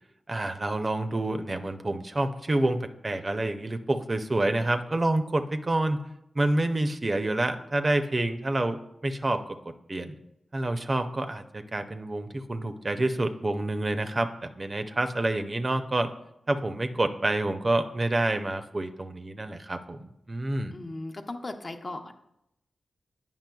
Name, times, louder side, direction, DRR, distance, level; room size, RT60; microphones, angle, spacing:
voice 1, 0.3-6.0 6.4-9.6 9.9-10.1 10.5-16.1 16.5-20.7, right 2 dB, 40° right, 8 dB, 0.4 m, -28 dB
voice 2, 20.7-22.1, left 2 dB, 45° left, 5 dB, 0.6 m, -37 dB
9.0 x 5.5 x 2.3 m, 0.84 s
cardioid pair, 45°, 0 cm